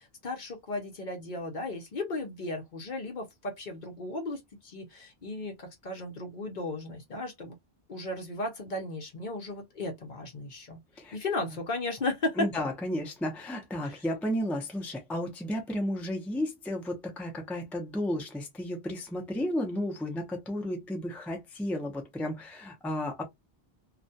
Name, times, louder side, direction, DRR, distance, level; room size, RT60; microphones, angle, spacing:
voice 1, 0.0-7.6 7.9-10.8 11.1-12.5 13.8-14.0, left 2 dB, 55° left, 0.8 m, -35 dB
voice 2, 12.4-23.2, left 1 dB, ahead, 0.5 m, -33 dB
2.4 x 2.2 x 2.6 m
omnidirectional pair, 1.1 m